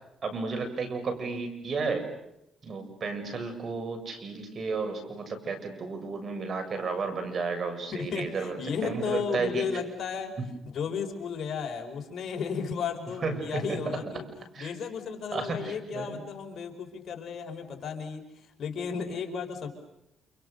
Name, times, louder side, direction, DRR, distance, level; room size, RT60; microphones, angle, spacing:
voice 1, 0.2-2.0 2.6-9.7 13.2-13.8 14.5-14.7 15.3-16.2, right 4 dB, 45° right, 7 dB, 7.4 m, -33 dB
voice 2, 7.9-10.4 10.7-14.3 14.6-19.7, left 6 dB, 60° left, 4 dB, 5.1 m, -34 dB
30.0 x 29.0 x 6.8 m, 0.85 s
cardioid pair, 90°, 0 cm